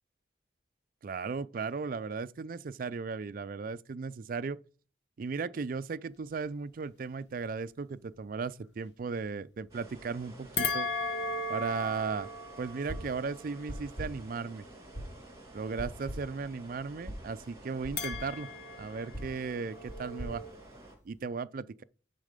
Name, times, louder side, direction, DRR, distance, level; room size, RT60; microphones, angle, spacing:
voice 1, 1.0-4.6 5.2-10.9 11.5-12.3 12.6-14.6 15.5-18.5 18.8-20.4 21.0-21.8, right 4 dB, 50° right, 0.4 m, -36 dB
sound 1, 9.7-20.9, right 1 dB, 20° right, 2.9 m, -52 dB
sound 2, 10.6-15.0 18.0-20.5, left 3 dB, 65° left, 1.2 m, -38 dB
sound 3, 12.9-13.2 13.7-14.3 14.9-15.3 15.8-16.4 17.1-17.3 17.8-18.4 19.1-21.2, equal, 15° left, 3.1 m, -42 dB
10.0 x 4.1 x 5.1 m
head